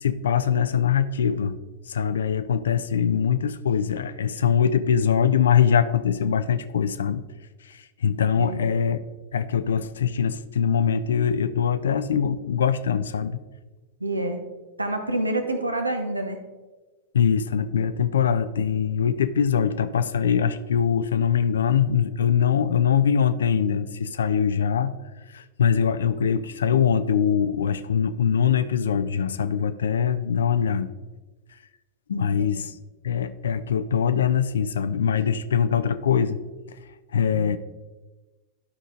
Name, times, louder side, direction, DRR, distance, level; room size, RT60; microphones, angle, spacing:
voice 1, 0.0-1.6 1.9-7.2 7.6-9.0 9.3-13.4 17.1-24.9 25.3-30.9 32.1-32.7 33.0-36.4 37.1-37.6, left 7 dB, 65° left, 12 dB, 0.4 m, -22 dB
voice 2, 8.3-8.6 14.0-14.4 14.8-16.4 32.1-32.2 32.6-32.7 37.3-37.6, right 1 dB, 85° right, 6 dB, 0.9 m, -28 dB
11.5 x 5.0 x 3.8 m, 1.2 s
figure-of-eight pair, 90°, 0 cm